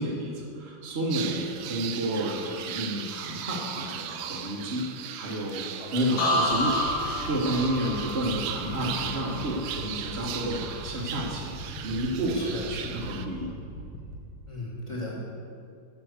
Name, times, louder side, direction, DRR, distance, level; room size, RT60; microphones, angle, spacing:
voice 1, 0.0-5.7 5.9-13.5, right 1 dB, 35° right, -3 dB, 1.3 m, -30 dB
sound 1, 1.1-13.3, right 10 dB, 75° right, 1.3 m, -38 dB
voice 2, 5.8-6.1 12.3-12.7 14.5-15.2, left 2 dB, 15° left, -4 dB, 1.8 m, -36 dB
sound 2, 6.2-10.0 10.4-10.8, left 1 dB, 65° left, 2.4 m, -30 dB
sound 3, 6.4-14.2, equal, 90° left, 2.2 m, -41 dB
9.8 x 6.1 x 6.5 m, 2.3 s
omnidirectional pair, 2.3 m